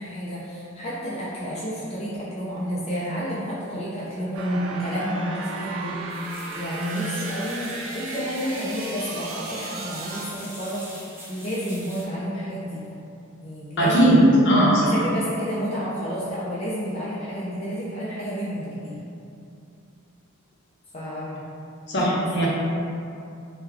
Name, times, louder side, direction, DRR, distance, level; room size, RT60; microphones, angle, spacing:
voice 1, 0.0-12.9 13.4-13.9 14.8-19.0 20.9-21.5 22.0-22.1, equal, 30° left, -9 dB, 0.5 m, -30 dB
sound 1, 4.3-10.3, right 3 dB, 90° right, 0.4 m, -35 dB
sound 2, 6.1-12.0, right 1 dB, 10° right, 0.6 m, -42 dB
voice 2, 13.8-14.9 21.9-22.5, right 1 dB, 60° left, -6 dB, 0.8 m, -18 dB
3.5 x 2.2 x 3.3 m, 2.6 s
head